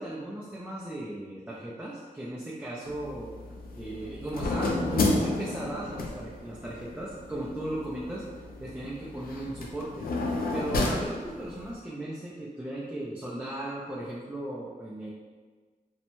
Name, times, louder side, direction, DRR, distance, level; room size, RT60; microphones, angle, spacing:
voice 1, 0.0-3.3 3.7-15.1, right 1 dB, 10° right, -7 dB, 0.3 m, -36 dB
sound 1, 2.9-11.7, left 2 dB, 90° left, 0.4 m, -32 dB
2.6 x 2.1 x 2.9 m, 1.4 s
wide cardioid pair, 125°, 15 cm